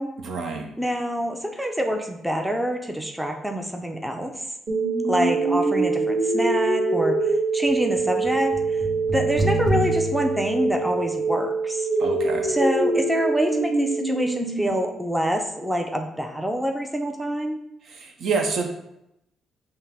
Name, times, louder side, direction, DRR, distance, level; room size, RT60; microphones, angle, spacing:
voice 1, 0.2-0.7 12.0-12.5 17.8-18.7, right 4 dB, 65° right, 3 dB, 0.6 m, -27 dB
voice 2, 0.8-4.3 5.0-7.1 7.5-8.5 9.1-11.9 12.5-17.6, equal, 5° right, 3 dB, 0.4 m, -26 dB
sound 1, 4.7-14.7, right 3 dB, 40° right, 1.3 m, -24 dB
5.4 x 2.0 x 3.5 m, 0.83 s
cardioid pair, 90°, 0 cm